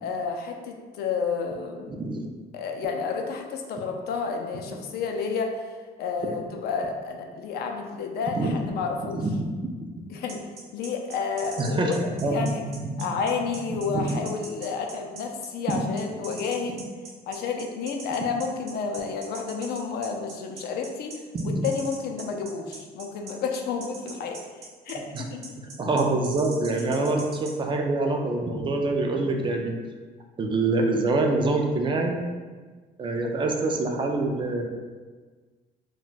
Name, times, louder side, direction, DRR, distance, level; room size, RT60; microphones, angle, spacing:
voice 1, 0.0-2.0 2.5-5.6 6.0-9.2 10.1-10.4 10.7-12.0 12.3-12.6 13.0-16.8 17.3-21.1 21.4-25.6 26.7-26.8, left 5 dB, 70° left, 3 dB, 0.4 m, -30 dB
voice 2, 1.9-2.3 8.3-8.5 9.1-10.0 11.6-13.2 13.7-14.3 15.7-15.8 21.3-21.6 25.1-25.2 25.8-29.8 30.4-32.2 33.0-34.6, right 2 dB, 30° right, 2 dB, 0.4 m, -26 dB
sound 1, 10.3-27.5, right 3 dB, 70° right, 0.8 m, -42 dB
2.2 x 2.1 x 3.8 m, 1.4 s
cardioid pair, 110°, 17 cm